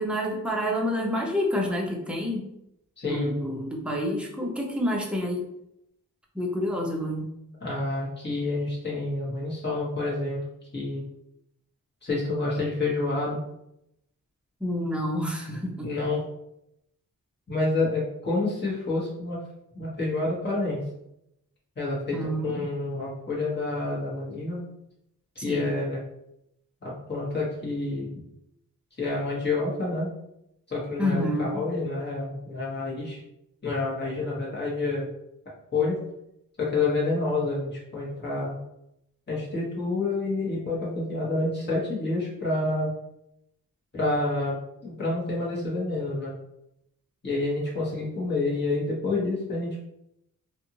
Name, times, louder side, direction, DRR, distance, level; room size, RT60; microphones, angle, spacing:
voice 1, 0.0-2.5 3.1-5.5 6.3-7.3 14.6-15.9 22.1-22.7 25.5-25.7 31.0-31.6, equal, 5° right, -1 dB, 0.6 m, -28 dB
voice 2, 3.0-3.3 7.6-10.4 10.7-11.0 12.0-13.4 15.8-16.2 17.5-19.4 19.7-20.8 21.8-24.6 25.4-26.0 26.8-28.1 29.0-30.1 30.7-33.2 33.6-35.1 35.7-36.0 36.6-38.6 39.3-42.9 43.9-44.6 44.8-46.3 47.2-49.9, left 2 dB, 30° left, -7 dB, 1.3 m, -28 dB
2.6 x 2.5 x 2.9 m, 0.80 s
wide cardioid pair, 80°, 35 cm